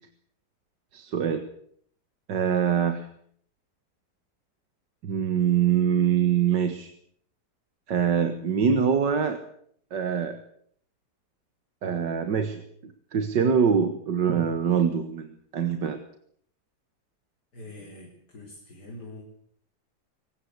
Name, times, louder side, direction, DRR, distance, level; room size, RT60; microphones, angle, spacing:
voice 1, 0.9-1.4 2.3-3.1 5.0-6.9 7.9-9.4 9.9-10.4 11.8-16.0, right 7 dB, 85° right, 9 dB, 2.1 m, -24 dB
voice 2, 17.5-19.2, left 2 dB, 70° left, 0 dB, 4.8 m, -44 dB
23.5 x 19.5 x 8.1 m, 0.64 s
omnidirectional pair, 1.8 m